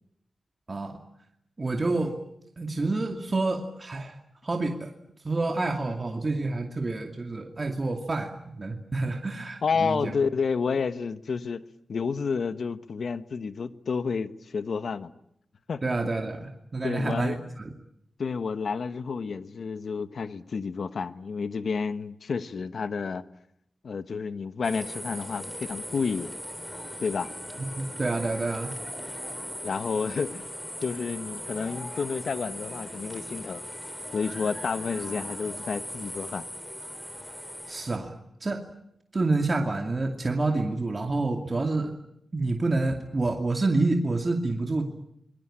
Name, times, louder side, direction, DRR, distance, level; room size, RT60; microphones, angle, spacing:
voice 1, 0.7-1.0 1.6-2.2 2.6-4.1 4.4-4.9 5.2-10.1 15.8-17.4 27.6-28.7 37.7-38.1 38.4-38.6 39.1-41.9 42.3-44.8, right 2 dB, 40° right, 3 dB, 2.5 m, -28 dB
voice 2, 9.6-11.6 11.9-15.1 15.7-16.1 16.8-17.6 18.2-23.2 23.8-26.3 27.0-27.3 29.6-30.5 30.8-33.7 34.1-36.5, left 5 dB, 70° left, 12 dB, 1.2 m, -30 dB
sound 1, 24.6-38.0, equal, 5° left, 3.3 m, -39 dB
26.5 x 22.0 x 8.8 m, 0.76 s
cardioid pair, 60°, 0 cm